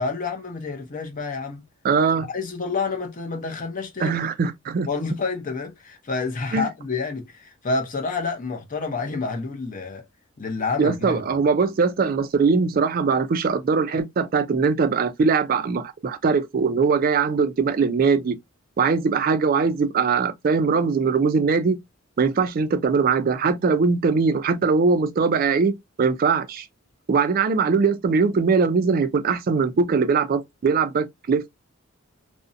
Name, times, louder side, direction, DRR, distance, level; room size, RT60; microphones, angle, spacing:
voice 1, 0.0-1.6 2.3-4.2 4.9-10.1 10.4-11.4, left 4 dB, 35° left, 0.6 m, -29 dB
voice 2, 1.8-2.3 4.0-4.9 6.5-6.6 10.8-18.4 18.8-21.8 22.2-26.7 27.1-31.5, right 5 dB, 40° right, 0.3 m, -21 dB
2.5 x 2.1 x 2.5 m
head